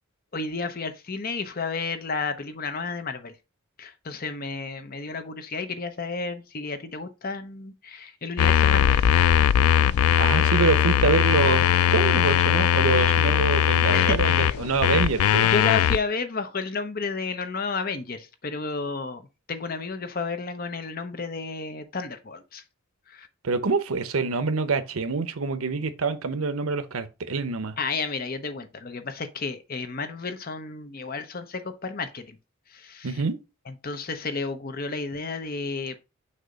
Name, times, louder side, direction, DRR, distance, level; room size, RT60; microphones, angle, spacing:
voice 1, 0.3-3.3 3.8-9.2 9.8-9.9 13.9-14.6 14.9-15.1 15.4-19.2 19.5-22.6 23.1-23.3 27.8-32.4 32.7-33.2 33.7-36.0, left 4 dB, 45° left, 0.7 m, -32 dB
sound 1, 8.4-16.0, left 9 dB, 85° left, 0.3 m, -20 dB
voice 2, 10.2-15.5 23.4-27.8 33.0-33.4, right 4 dB, 80° right, 0.7 m, -26 dB
6.6 x 2.8 x 5.1 m
head